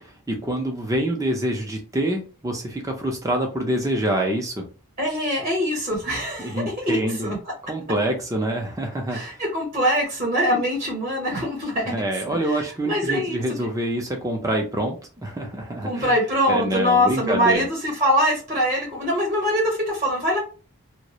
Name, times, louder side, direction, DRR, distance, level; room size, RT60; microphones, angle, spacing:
voice 1, 0.0-4.6 6.4-7.3 7.7-9.4 11.9-16.1 16.5-17.6, right 1 dB, 15° right, 2 dB, 0.4 m, -26 dB
voice 2, 5.0-7.4 9.1-13.7 15.8-20.4, equal, 30° right, -2 dB, 0.8 m, -23 dB
2.3 x 2.0 x 2.8 m, 0.35 s
head